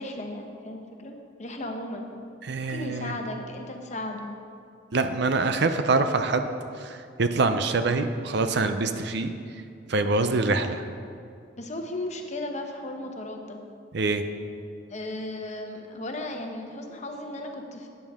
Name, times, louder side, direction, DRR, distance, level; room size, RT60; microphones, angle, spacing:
voice 1, 0.0-2.1 2.7-4.3 11.6-13.6 14.9-17.9, left 1 dB, 40° left, 3 dB, 1.0 m, -35 dB
voice 2, 2.4-3.1 4.9-6.5 6.8-9.3 9.9-10.8 13.9-14.2, right 3 dB, 60° right, 8 dB, 0.6 m, -25 dB
12.5 x 9.4 x 3.6 m, 2.4 s
head